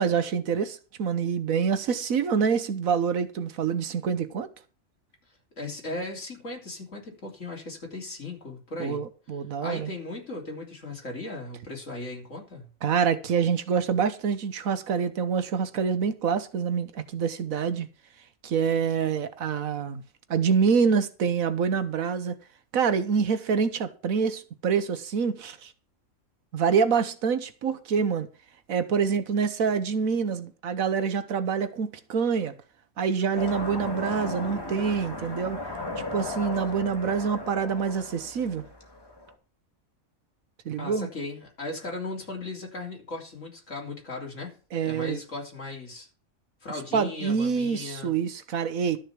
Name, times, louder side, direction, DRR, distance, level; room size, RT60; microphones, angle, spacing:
voice 1, 0.0-4.5 8.8-9.9 12.8-17.9 18.4-20.0 20.3-22.4 22.7-25.7 26.5-28.3 28.7-32.5 33.0-35.6 36.1-38.6 40.6-41.1 44.7-45.2 46.9-49.0, right 6 dB, 80° right, 1.4 m, -26 dB
voice 2, 5.6-9.0 9.6-12.7 40.8-44.5 44.8-46.1 46.6-48.1, left 2 dB, 65° left, 3.8 m, -37 dB
sound 1, 33.3-39.3, left 2 dB, 15° left, 2.0 m, -36 dB
12.5 x 6.5 x 5.9 m
omnidirectional pair, 1.4 m